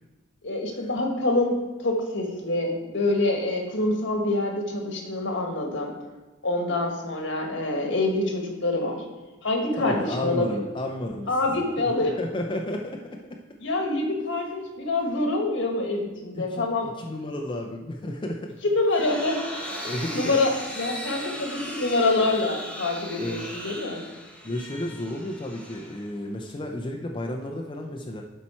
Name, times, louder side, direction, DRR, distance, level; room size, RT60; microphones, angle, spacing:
voice 1, 0.4-5.9 6.4-9.0 9.4-10.6 11.3-12.2 13.6-16.9 18.6-19.4 20.1-24.0, left 2 dB, 65° left, 1 dB, 1.5 m, -26 dB
voice 2, 9.8-11.6 12.2-13.4 16.3-16.7 17.0-18.6 19.8-20.4 23.2-23.5 24.4-28.2, left 1 dB, 25° left, 2 dB, 0.5 m, -32 dB
sound 1, 18.6-26.4, equal, 5° left, 1.1 m, -38 dB
12.0 x 4.3 x 4.4 m, 1.2 s
head